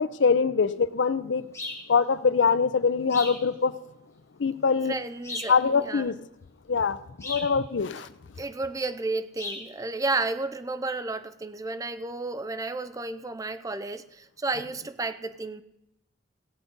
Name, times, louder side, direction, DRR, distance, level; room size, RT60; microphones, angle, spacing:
voice 1, 0.0-1.5 1.9-3.7 4.4-4.9 5.5-6.2 6.7-7.0 7.2-8.1, left 5 dB, 85° left, 15 dB, 0.6 m, -23 dB
sound 1, 1.5-1.9 3.1-3.4 5.2-5.6 7.2-7.5 9.4-9.7, left 2 dB, 15° left, 1.6 m, -36 dB
voice 2, 4.9-6.2 8.4-15.6, right 3 dB, 20° right, 12 dB, 0.5 m, -32 dB
16.5 x 8.0 x 5.3 m, 0.86 s
head